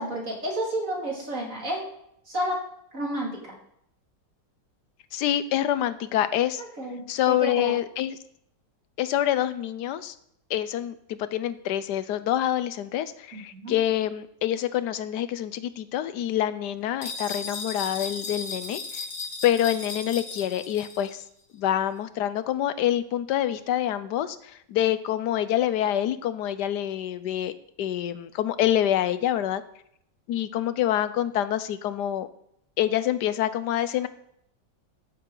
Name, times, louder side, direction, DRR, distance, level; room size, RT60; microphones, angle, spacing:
voice 1, 0.0-1.8 2.3-2.6 2.9-3.6 6.6-7.7 13.3-13.8, right 1 dB, 45° right, -2 dB, 2.8 m, -31 dB
voice 2, 5.1-6.6 7.1-8.2 9.0-10.1 10.5-18.8 19.4-21.2 21.5-29.6 30.3-32.3 32.8-34.1, left 11 dB, 75° left, 14 dB, 1.2 m, -26 dB
sound 1, 17.0-21.1, left 4 dB, 50° left, 1.9 m, -36 dB
13.5 x 8.0 x 3.9 m, 0.72 s
omnidirectional pair, 1.9 m